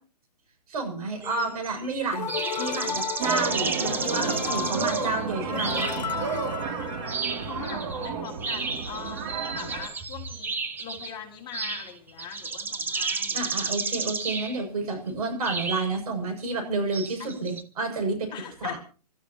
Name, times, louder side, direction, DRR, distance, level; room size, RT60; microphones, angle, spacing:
voice 1, 0.7-2.3 2.6-6.1 13.3-18.3 18.6-18.8, right 3 dB, 60° right, 4 dB, 7.4 m, -30 dB
sound 1, 1.2-2.0 2.3-5.2 5.6-6.3 6.8-11.1 11.5-14.6 15.4-16.0 16.9-17.6, right 4 dB, 10° right, 0.9 m, -32 dB
sound 2, 2.1-7.6, left 7 dB, 75° left, 1.4 m, -34 dB
sound 3, 3.2-9.9, right 5 dB, 45° right, 3.2 m, -32 dB
voice 2, 7.4-10.5 10.8-13.4 17.2-17.6 18.3-18.8, left 8 dB, 20° left, 0 dB, 3.6 m, -41 dB
29.5 x 13.0 x 3.1 m, 0.36 s
hypercardioid pair, 140°, 21 cm